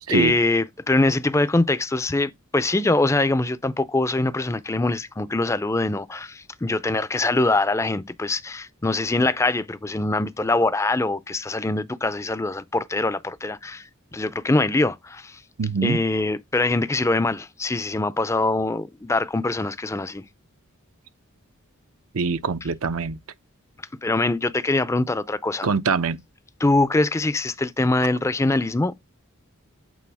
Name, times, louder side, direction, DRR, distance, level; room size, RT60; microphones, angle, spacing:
voice 1, 0.0-13.9 14.1-15.4 15.8-20.2 24.0-25.7 26.6-28.9, left 2 dB, 15° left, 0.4 m, -23 dB
voice 2, 15.6-16.0 22.1-23.2 25.6-26.2, right 4 dB, 80° right, 0.7 m, -23 dB
8.5 x 3.9 x 3.4 m
head